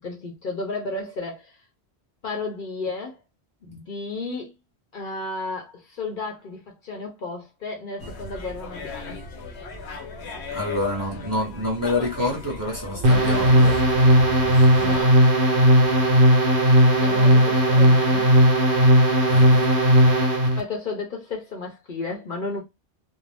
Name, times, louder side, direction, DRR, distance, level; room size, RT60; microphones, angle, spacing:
voice 1, 0.0-1.6 2.2-3.2 3.7-4.5 4.9-9.2 14.7-15.2 17.0-18.3 20.6-22.6, left 3 dB, 55° left, 0.8 m, -33 dB
sound 1, 8.0-15.0, left 2 dB, 80° left, 1.0 m, -36 dB
voice 2, 10.5-13.8 15.5-16.1 19.3-19.8, left 2 dB, 20° right, 0.8 m, -28 dB
sound 2, 13.0-20.6, right 1 dB, 55° right, 0.9 m, -16 dB
2.5 x 2.0 x 3.3 m
omnidirectional pair, 1.1 m